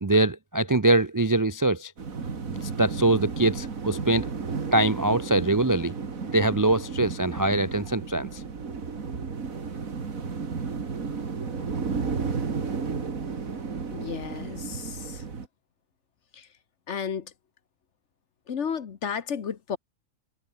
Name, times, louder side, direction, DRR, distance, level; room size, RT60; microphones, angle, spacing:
voice 1, 0.0-1.9 2.6-4.3 4.7-5.9 6.3-8.4, right 2 dB, 30° right, 0.3 m, -23 dB
sound 1, 2.0-15.5, right 5 dB, 80° right, 2.6 m, -33 dB
voice 2, 13.9-15.2 16.3-16.5 16.9-17.3 18.5-19.8, left 7 dB, 60° left, 1.4 m, -33 dB
omnidirectional pair, 1.4 m